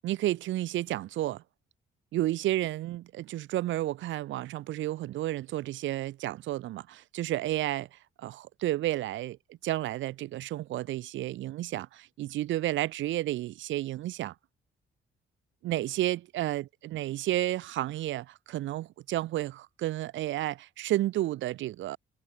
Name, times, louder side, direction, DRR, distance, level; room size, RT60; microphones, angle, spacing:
voice 1, 0.0-1.4 2.1-9.4 9.6-14.3 15.6-22.0, right 15 dB, 75° right, 0.5 m, -31 dB
cardioid pair, 90°, 20 cm